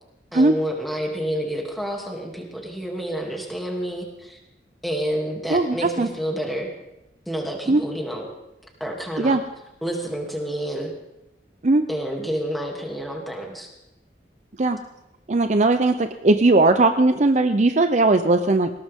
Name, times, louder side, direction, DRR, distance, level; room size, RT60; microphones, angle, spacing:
voice 1, 0.3-4.4 4.8-6.7 7.3-8.3 8.8-9.4 9.8-10.9 11.9-13.7, equal, ahead, 0 dB, 2.7 m, -29 dB
voice 2, 5.5-6.1 7.7-7.8 9.2-9.4 11.6-11.8 14.6-14.8 15.3-18.7, right 2 dB, 40° right, 8 dB, 0.6 m, -18 dB
20.5 x 17.5 x 3.7 m, 0.90 s
head